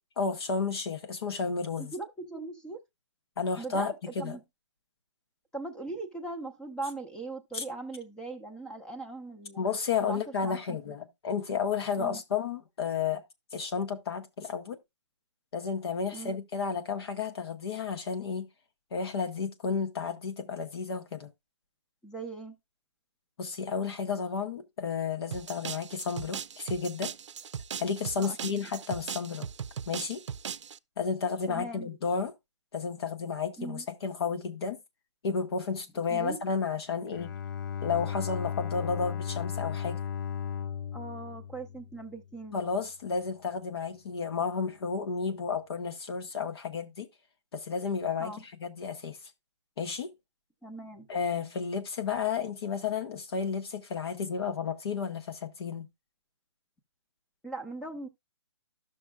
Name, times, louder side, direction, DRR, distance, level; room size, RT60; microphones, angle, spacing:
voice 1, 0.2-1.9 3.4-4.4 7.5-7.6 9.6-13.2 13.5-14.8 15.5-18.5 18.9-21.3 23.4-27.1 27.8-29.5 29.9-30.2 31.0-32.3 32.7-34.8 35.2-37.3 37.8-40.0 42.5-47.1 47.5-48.3 48.6-49.2 49.8-50.1 51.1-55.9, left 5 dB, 55° left, 1.1 m, -32 dB
voice 2, 1.8-2.8 3.6-4.4 5.5-9.6 10.0-11.0 12.0-12.2 16.1-16.4 22.0-22.6 28.2-28.6 31.5-32.0 33.6-33.9 36.1-36.4 40.9-42.6 48.2-48.4 50.6-51.1 57.4-58.1, right 3 dB, 5° left, 0.7 m, -40 dB
sound 1, 25.3-30.8, right 8 dB, 75° right, 0.5 m, -39 dB
Bowed string instrument, 37.1-42.3, left 8 dB, 40° left, 0.4 m, -35 dB
12.5 x 6.1 x 2.3 m
hypercardioid pair, 155°, 15 cm